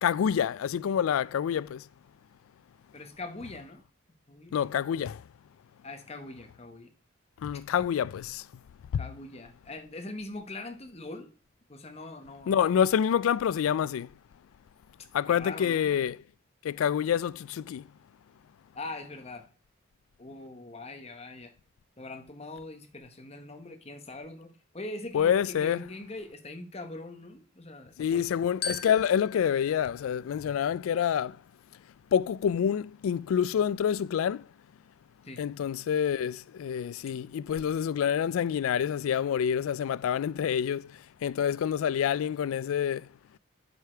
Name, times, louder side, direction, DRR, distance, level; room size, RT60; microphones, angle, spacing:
voice 1, 0.0-1.8 4.5-5.2 7.4-8.5 12.5-14.1 15.1-16.2 16.6-17.8 25.1-25.8 28.0-31.4 32.1-34.5 35.4-43.1, left 8 dB, 85° left, 0.3 m, -27 dB
voice 2, 2.9-3.8 4.3-4.6 5.8-6.9 9.0-11.3 11.7-12.5 15.3-16.0 18.7-19.5 20.2-21.5 22.0-28.5 35.2-35.4, left 2 dB, 30° left, 1.0 m, -42 dB
Glockenspiel, 28.6-31.1, left 6 dB, 55° left, 1.0 m, -41 dB
8.1 x 5.0 x 4.4 m
head